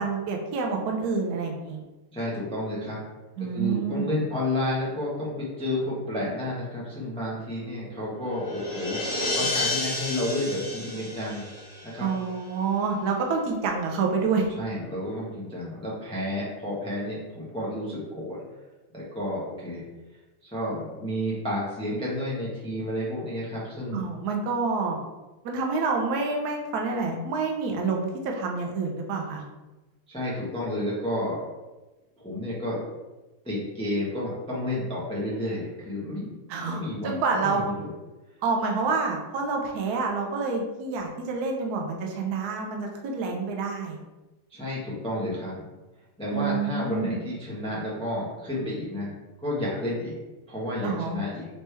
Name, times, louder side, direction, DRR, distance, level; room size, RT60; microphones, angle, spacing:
voice 1, 0.0-1.8 3.4-4.1 12.0-14.5 23.9-25.0 25.4-29.4 36.5-37.6 38.4-44.0 46.3-47.2 50.8-51.2, right 4 dB, 70° right, 1 dB, 0.9 m, -28 dB
voice 2, 2.1-3.0 3.4-11.5 11.8-12.1 14.6-18.4 18.9-19.8 20.4-24.0 30.1-31.5 32.2-32.8 33.4-36.3 36.7-37.9 44.5-45.6 46.2-49.1 49.4-50.2 50.5-51.5, left 1 dB, 5° left, -6 dB, 0.4 m, -31 dB
sound 1, 7.8-12.4, left 2 dB, 30° left, 1.1 m, -31 dB
4.2 x 3.1 x 3.3 m, 1.1 s
omnidirectional pair, 2.3 m